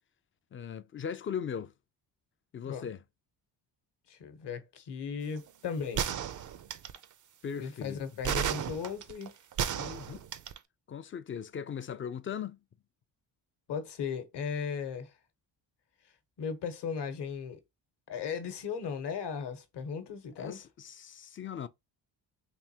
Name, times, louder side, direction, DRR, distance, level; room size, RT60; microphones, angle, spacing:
voice 1, 0.5-1.7 2.5-3.0 7.4-8.0 9.7-10.3 10.9-12.6 20.4-21.7, left 7 dB, 30° left, 0.3 m, -39 dB
voice 2, 4.1-6.1 7.6-9.3 13.7-15.1 16.4-17.6 18.1-20.6, left 6 dB, 55° left, 1.0 m, -37 dB
sound 1, 6.0-7.0 8.2-10.6, right 9 dB, 40° right, 0.5 m, -33 dB
3.5 x 2.6 x 2.7 m
supercardioid pair, 60°, 48 cm